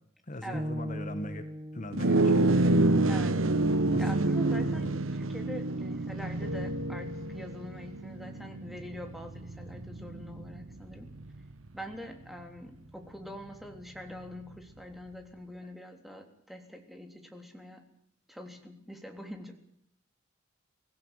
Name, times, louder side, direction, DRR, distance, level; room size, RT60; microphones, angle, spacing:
voice 1, 0.3-1.5 1.7-2.5 3.9-4.0, left 1 dB, 40° left, 9 dB, 1.5 m, -39 dB
sound 1, 0.5-4.7, equal, 25° right, 1.1 m, -41 dB
sound 2, 1.9-11.5, right 2 dB, 85° right, 1.1 m, -28 dB
voice 2, 3.1-3.4 4.0-11.1 11.7-17.8 18.3-19.6, equal, ahead, 4 dB, 3.5 m, -44 dB
Keyboard (musical), 6.4-8.4, left 5 dB, 65° right, 4.3 m, -44 dB
24.0 x 17.0 x 9.0 m, 0.68 s
head